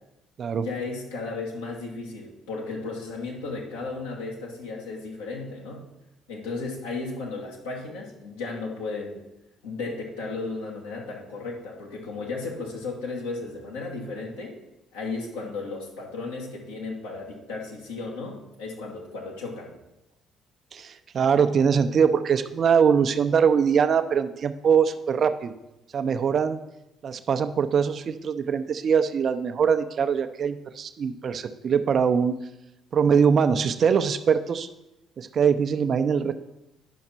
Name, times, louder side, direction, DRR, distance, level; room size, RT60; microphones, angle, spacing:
voice 1, 0.6-5.8 6.3-9.2 9.6-14.6 14.9-19.7, left 3 dB, 80° left, -2 dB, 1.8 m, -34 dB
voice 2, 20.7-25.5 25.9-26.6 27.0-32.4 32.9-34.7 35.2-36.3, right 6 dB, 50° right, 10 dB, 0.6 m, -22 dB
10.0 x 5.8 x 4.3 m, 0.92 s
figure-of-eight pair, 45°, 0 cm